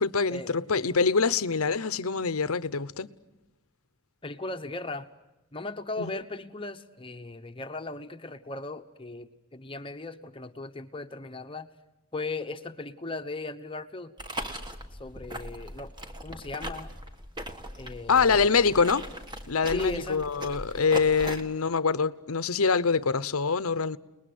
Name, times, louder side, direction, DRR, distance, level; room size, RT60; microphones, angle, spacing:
voice 1, 0.0-3.1 6.0-6.1 18.1-19.0 19.5-24.0, left 5 dB, 85° left, 0.9 m, -25 dB
voice 2, 4.2-5.1 5.5-11.7 12.1-14.1 15.0-15.9 16.2-16.9 17.8-18.5 19.7-20.2 20.7-20.8, left 3 dB, 25° left, 1.0 m, -37 dB
sound 1, 14.2-21.4, equal, 20° right, 1.7 m, -39 dB
30.0 x 20.5 x 9.5 m
head